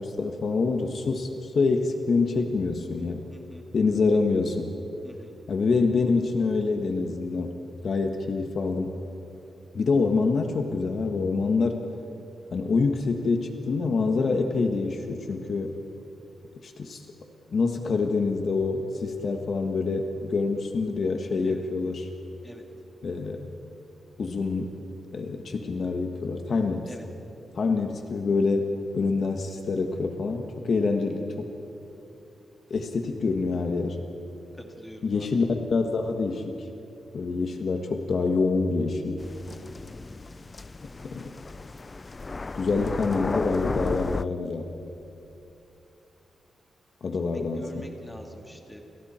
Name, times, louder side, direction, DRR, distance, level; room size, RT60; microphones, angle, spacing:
voice 1, 0.0-3.2 3.7-4.7 5.5-7.5 7.8-8.9 9.7-11.8 12.5-15.8 16.6-17.1 17.5-22.1 23.0-23.5 24.2-24.8 25.1-26.9 27.5-31.5 32.7-34.0 35.0-36.7 37.1-39.2 41.0-41.3 42.5-44.7 47.0-47.9, left 4 dB, 50° left, 4 dB, 1.5 m, -26 dB
voice 2, 3.3-3.6 5.0-5.3 21.4-21.6 22.4-22.6 26.9-27.0 34.6-35.4 47.1-48.8, equal, 5° left, 1 dB, 2.7 m, -44 dB
sound 1, 39.2-44.2, left 3 dB, 25° left, 0.4 m, -34 dB
29.0 x 29.0 x 4.4 m, 2.8 s
wide cardioid pair, 135°, 0 cm